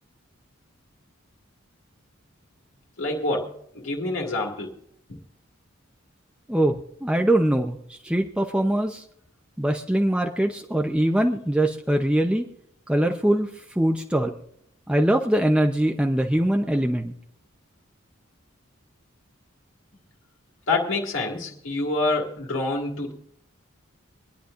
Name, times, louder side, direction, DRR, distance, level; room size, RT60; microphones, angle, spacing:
voice 1, 3.0-4.7 5.1-5.2 20.7-23.1, left 2 dB, 75° left, 0 dB, 2.2 m, -27 dB
voice 2, 6.5-9.0 9.6-12.5 12.9-13.5 13.8-14.3 14.9-17.1, right 1 dB, 5° right, 2 dB, 0.7 m, -22 dB
25.0 x 10.0 x 2.6 m, 0.72 s
head